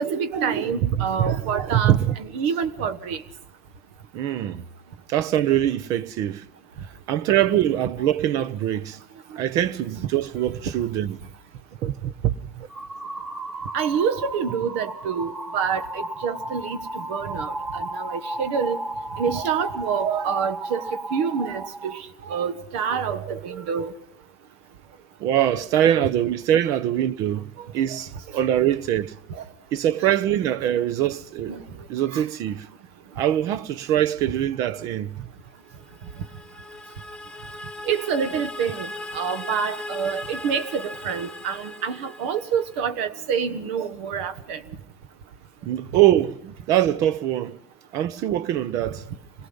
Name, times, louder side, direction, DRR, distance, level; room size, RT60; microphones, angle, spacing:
voice 1, 0.0-1.9 2.3-3.2 13.7-16.8 17.1-18.8 19.2-20.8 21.1-22.0 22.3-23.9 27.9-28.0 31.5-31.6 32.1-32.2 37.9-38.9 39.1-44.6, right 7 dB, 80° right, 1.3 m, -27 dB
voice 2, 0.8-2.2 4.1-4.7 5.1-6.5 7.1-9.0 9.4-11.2 11.8-12.7 25.2-29.2 29.7-31.6 31.9-32.7 33.2-35.3 45.6-47.6 47.9-49.1, right 11 dB, 60° right, 0.9 m, -23 dB
sound 1, 12.7-22.0, right 2 dB, 25° right, 1.7 m, -34 dB
sound 2, 35.8-42.9, left 1 dB, 15° left, 1.0 m, -38 dB
26.0 x 18.5 x 5.6 m
supercardioid pair, 110°, 7 cm